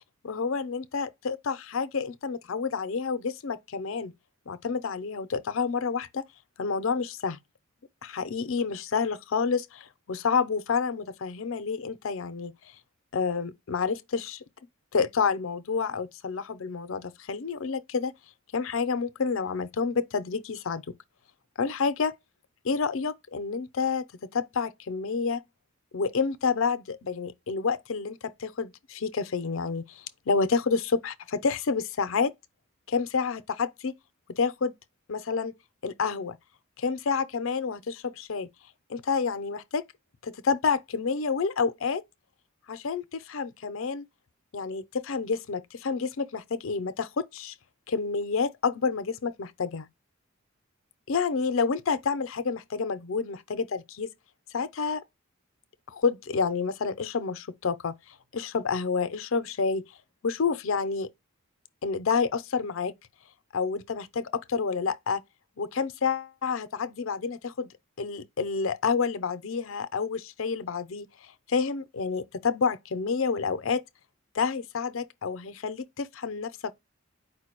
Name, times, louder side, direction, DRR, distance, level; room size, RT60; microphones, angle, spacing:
voice 1, 0.2-4.1 4.5-6.2 6.6-7.4 8.0-12.5 13.1-14.4 14.9-18.1 18.5-20.8 21.6-22.1 22.6-25.4 25.9-32.3 32.9-33.9 34.3-34.7 35.1-35.5 35.8-36.4 36.8-38.5 38.9-39.8 40.2-42.0 42.7-44.1 44.5-47.5 47.9-49.9 51.1-54.1 54.5-55.0 55.9-58.0 58.3-59.9 60.2-61.1 61.8-62.9 63.5-65.2 65.6-67.7 68.0-71.1 71.5-73.8 74.3-76.7, left 5 dB, 80° left, 0.5 m, -29 dB
4.8 x 2.2 x 4.4 m
head